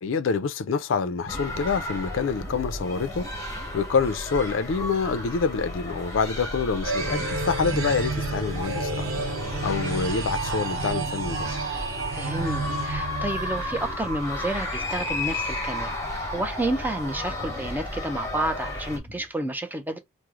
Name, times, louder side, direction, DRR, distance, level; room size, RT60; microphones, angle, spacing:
voice 1, 0.0-9.1 9.6-11.6, left 5 dB, 70° left, 0.4 m, -27 dB
sound 1, 1.1-4.2 4.7-4.8 5.2-5.5 7.0-8.3 8.6-10.4 10.7-19.3, left 1 dB, 45° right, 0.9 m, -46 dB
sound 2, 1.3-19.0, left 1 dB, 15° left, 1.0 m, -33 dB
sound 3, 6.8-13.8, right 3 dB, 75° right, 1.0 m, -30 dB
voice 2, 12.1-20.0, right 1 dB, 10° right, 0.4 m, -30 dB
3.1 x 2.0 x 3.6 m
head